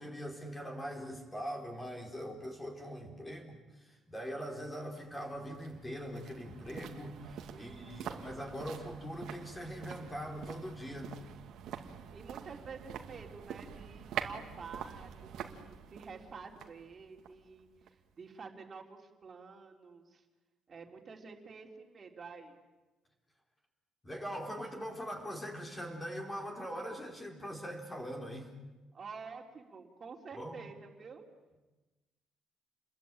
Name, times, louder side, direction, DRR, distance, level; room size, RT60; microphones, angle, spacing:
voice 1, 0.0-11.1 24.0-28.5 30.3-30.6, equal, 10° left, 2 dB, 4.3 m, -42 dB
sound 1, 5.0-18.1 18.4-18.5, right 8 dB, 65° right, 2.4 m, -46 dB
voice 2, 7.5-8.2 12.1-20.2 20.7-22.6 28.9-31.3, right 5 dB, 30° right, 2 dB, 3.8 m, -49 dB
29.5 x 22.0 x 9.1 m, 1.1 s
cardioid pair, 145°, 0 cm